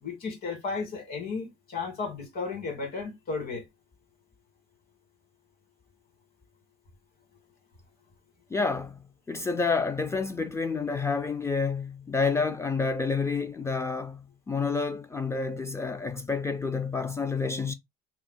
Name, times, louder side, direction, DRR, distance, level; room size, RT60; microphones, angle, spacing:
voice 1, 0.0-3.7, left 4 dB, 60° left, 1.8 m, -34 dB
voice 2, 8.5-9.0 9.3-17.7, left 4 dB, 15° left, 0.3 m, -29 dB
2.9 x 2.0 x 3.7 m
cardioid pair, 110°, 17 cm